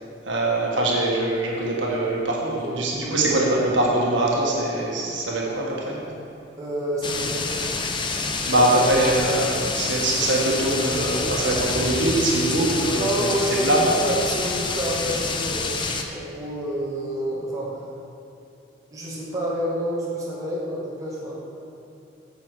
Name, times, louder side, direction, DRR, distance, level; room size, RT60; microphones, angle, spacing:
voice 1, 0.3-6.0 8.5-13.3 13.6-13.9, right 1 dB, 75° right, -3 dB, 1.6 m, -22 dB
voice 2, 2.4-2.7 3.0-3.2 6.6-7.5 13.0-15.7 16.1-17.8 18.9-21.3, equal, 20° right, -7 dB, 1.8 m, -28 dB
sound 1, 7.0-16.0, left 4 dB, 25° left, 0.6 m, -27 dB
9.2 x 7.5 x 4.7 m, 2.7 s
head